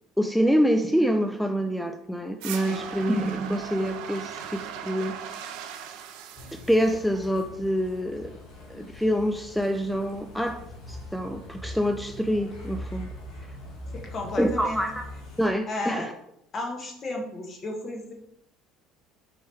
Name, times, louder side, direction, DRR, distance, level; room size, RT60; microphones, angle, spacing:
voice 1, 0.2-5.1 6.7-8.3 8.7-10.6 10.9-13.1 14.4-15.1 15.4-16.1, equal, ahead, 6 dB, 0.3 m, -26 dB
sound 1, 2.4-7.4, right 8 dB, 70° right, 0.4 m, -38 dB
sound 2, 6.3-15.5, left 1 dB, 60° left, 1.5 m, -42 dB
voice 2, 13.9-14.8 15.7-16.1 16.5-18.1, left 2 dB, 40° left, 1 dB, 1.2 m, -33 dB
4.5 x 3.1 x 3.4 m, 0.78 s
hypercardioid pair, 70°, 0 cm